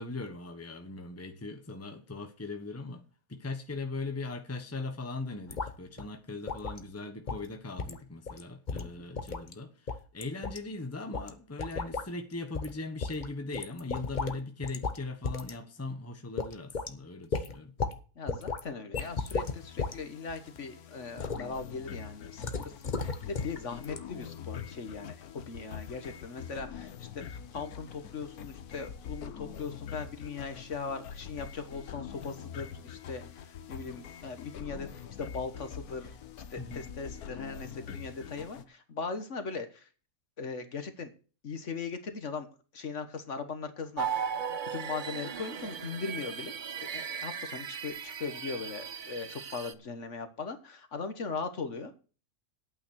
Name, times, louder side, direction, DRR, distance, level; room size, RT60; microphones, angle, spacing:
voice 1, 0.0-17.8 36.6-36.8, left 3 dB, 10° left, 1.1 m, -39 dB
sound 1, 5.5-5.7 6.0-6.1 6.5-6.8 7.3-7.5 7.8-8.0 8.3-8.4 8.7-9.5 9.9-10.6 11.1-11.3 11.6-12.1 12.5-12.7 13.0-14.4 14.6-15.0 15.2-15.5 15.9-16.0 16.4-16.9 17.3-18.0 18.3-18.6 18.9-19.9 20.3-20.6 21.2-21.4 22.4-23.6 23.8-24.0, left 4 dB, 35° left, 1.0 m, -34 dB
voice 2, 8.7-9.0 18.2-36.2 36.5-39.9 40.4-41.1 41.4-42.5 42.7-44.3 44.7-46.5 46.9-52.0, left 4 dB, 55° left, 1.5 m, -39 dB
sound 2, 18.9-38.6, left 8 dB, 90° left, 1.4 m, -44 dB
sound 3, 44.0-49.7, right 7 dB, 45° right, 0.7 m, -37 dB
9.7 x 8.8 x 6.2 m
omnidirectional pair, 1.5 m